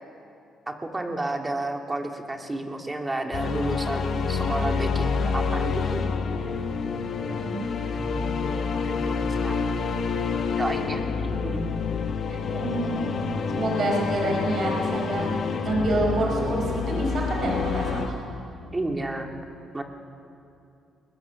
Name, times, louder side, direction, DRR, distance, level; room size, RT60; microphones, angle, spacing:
voice 1, 0.7-6.1 7.9-9.6 10.6-11.7 16.2-16.6 18.7-19.3 19.7-19.8, right 2 dB, 20° right, 3 dB, 2.4 m, -31 dB
sound 1, 3.3-18.1, left 5 dB, 60° left, 1.6 m, -28 dB
voice 2, 12.3-13.2 13.5-15.3 15.6-18.2, right 2 dB, 55° right, -1 dB, 5.2 m, -27 dB
22.5 x 20.0 x 7.1 m, 2.6 s
cardioid pair, 90°, 0 cm